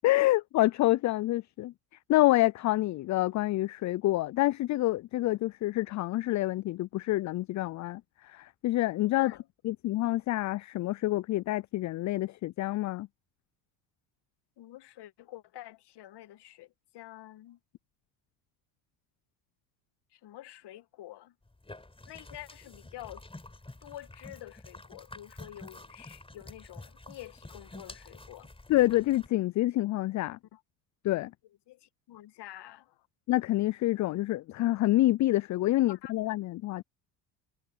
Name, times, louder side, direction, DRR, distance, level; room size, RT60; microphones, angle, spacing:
voice 1, 0.0-1.7 2.1-9.3 9.6-13.1 28.7-30.4 31.0-31.3 33.3-36.8, left 16 dB, 35° left, 0.5 m, -27 dB
voice 2, 14.6-17.6 20.1-21.4 22.1-23.2 23.8-28.5 30.3-30.6 31.7-33.1 35.9-36.1, left 14 dB, 55° left, 2.0 m, -48 dB
sound 1, 21.5-29.3, left 2 dB, 10° left, 5.0 m, -49 dB
hypercardioid pair, 65°, 50 cm